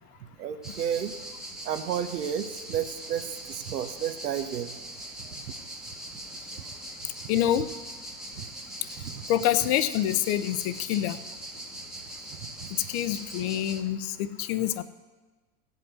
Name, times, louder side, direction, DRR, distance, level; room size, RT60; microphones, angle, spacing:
voice 1, 0.4-1.1 1.6-3.2 3.5-4.7 8.4-8.5, right 9 dB, 85° right, 8 dB, 1.1 m, -31 dB
sound 1, 0.6-13.8, right 1 dB, ahead, 1.0 m, -41 dB
voice 2, 7.3-7.7 9.3-11.2 12.9-14.8, left 12 dB, 45° left, 12 dB, 0.7 m, -26 dB
15.5 x 5.5 x 8.0 m, 1.3 s
hypercardioid pair, 125°, 47 cm